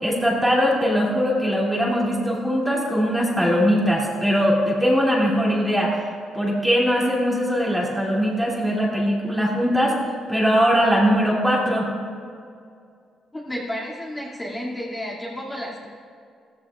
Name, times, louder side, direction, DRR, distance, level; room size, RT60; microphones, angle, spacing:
voice 1, 0.0-6.0 6.3-10.0 10.3-11.9, equal, 5° right, -4 dB, 2.6 m, -21 dB
voice 2, 13.3-15.9, equal, 15° left, -6 dB, 2.4 m, -31 dB
15.5 x 14.5 x 2.4 m, 2.3 s
cardioid pair, 90°, 0 cm